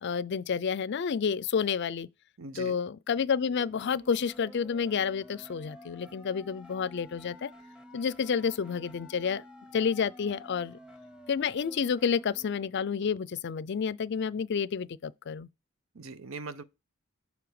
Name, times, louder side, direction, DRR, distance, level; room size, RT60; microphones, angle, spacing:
voice 1, 0.0-2.1 2.6-7.5 7.9-9.4 9.7-10.8 11.3-15.5, left 6 dB, 55° left, 0.4 m, -30 dB
voice 2, 2.4-2.8 15.9-16.6, right 3 dB, 70° right, 0.7 m, -41 dB
sound 1, 3.2-13.2, equal, 5° right, 1.0 m, -51 dB
7.0 x 3.3 x 4.8 m
head